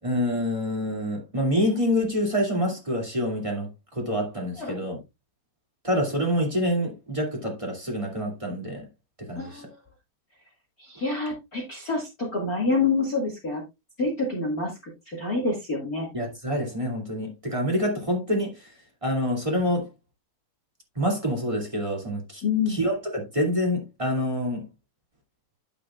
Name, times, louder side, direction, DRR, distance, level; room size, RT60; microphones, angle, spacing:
voice 1, 0.0-5.0 5.8-8.8 9.2-9.6 16.1-18.7 19.0-19.9 20.9-22.4 22.7-24.6, equal, 15° right, 1.0 m, -27 dB
voice 2, 9.3-9.7 10.8-13.6 14.0-16.1 22.4-22.8, left 3 dB, 55° left, 0.9 m, -27 dB
11.0 x 7.0 x 2.4 m
omnidirectional pair, 5.2 m